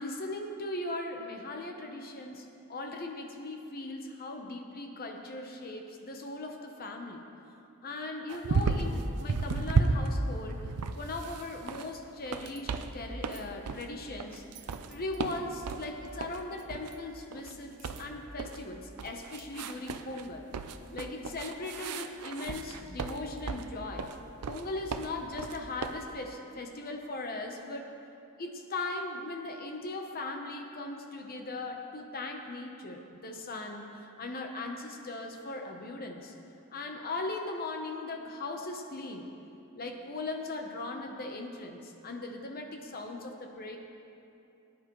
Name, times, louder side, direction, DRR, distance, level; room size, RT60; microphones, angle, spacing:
voice 1, 0.0-7.3 7.8-14.4 14.9-20.5 20.9-24.1 24.5-27.9 28.4-36.3 36.7-39.3 39.7-43.8, left 2 dB, 40° left, 3 dB, 0.9 m, -39 dB
sound 1, 8.3-9.0 9.3-11.9 12.3-12.9 13.2-13.9 14.2-15.9 16.2-16.4 16.7-17.0 17.3-18.6 19.0-20.3 20.5-23.7 24.0-24.6 24.9-26.0, right 4 dB, 90° right, 0.6 m, -33 dB
19.0 x 10.0 x 3.1 m, 2.7 s
head